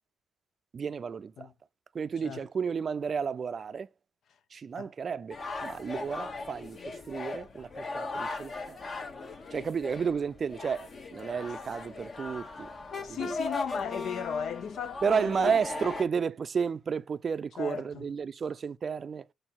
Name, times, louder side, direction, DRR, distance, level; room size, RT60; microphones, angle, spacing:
voice 1, 0.7-1.5 1.9-3.9 4.5-8.8 9.5-12.7 13.0-13.3 15.0-19.3, right 6 dB, 45° right, 0.4 m, -32 dB
sound 1, 5.3-16.0, left 3 dB, 45° left, 1.1 m, -38 dB
voice 2, 13.0-15.6 17.6-18.1, left 7 dB, 65° left, 0.5 m, -36 dB
6.4 x 4.4 x 4.2 m
cardioid pair, 90°, 0 cm